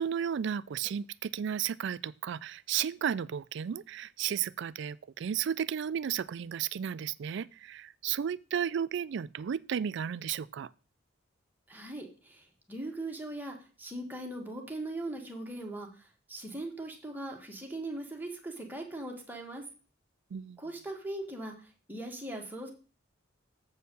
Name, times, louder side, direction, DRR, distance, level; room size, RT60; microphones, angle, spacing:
voice 1, 0.0-10.7 20.3-20.6, right 8 dB, 65° right, 0.3 m, -33 dB
voice 2, 11.7-19.6 20.6-22.7, right 1 dB, 10° right, 1.5 m, -40 dB
7.4 x 4.5 x 6.8 m
head